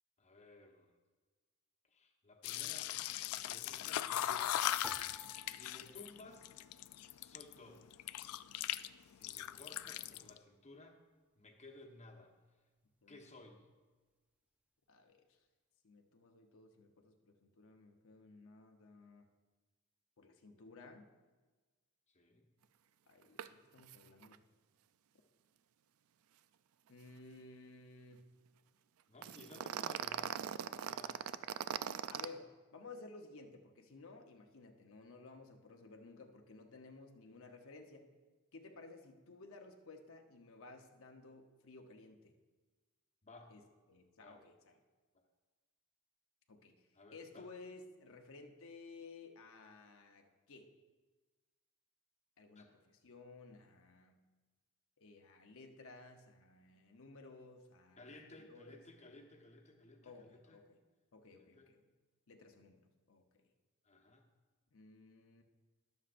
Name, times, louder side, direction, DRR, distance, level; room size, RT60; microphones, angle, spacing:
voice 1, 0.2-0.9 1.9-2.9 3.5-4.6 5.4-6.7 7.1-7.9 9.0-11.0 11.4-12.3 13.1-13.6 22.1-22.5 29.1-30.4 30.7-31.8 43.2-43.5 44.2-44.4 46.9-47.5 52.5-52.7 58.0-60.6 61.3-61.7 63.8-64.3, left 2 dB, 30° left, 0 dB, 1.1 m, -57 dB
sound 1, 2.4-7.5 7.9-8.9 9.1-10.4, left 12 dB, 80° left, 0.3 m, -39 dB
sound 2, 4.8-7.4 7.6-8.5 9.1-9.6, left 1 dB, 5° right, 0.4 m, -56 dB
voice 2, 13.0-13.3 14.9-15.2 15.8-19.3 20.2-21.1 23.1-24.4 26.9-28.2 31.8-38.1 38.5-42.4 43.5-43.6 43.9-44.8 46.5-50.7 52.4-54.2 55.0-58.8 60.0-60.8 61.1-61.9 62.3-63.4 64.7-65.4, left 3 dB, 65° left, 3 dB, 0.8 m, -56 dB
sound 3, 23.4-23.5 23.8-24.0 24.2-24.3 29.2-32.3, right 8 dB, 70° right, 0.4 m, -40 dB
21.5 x 7.2 x 2.5 m, 1.3 s
head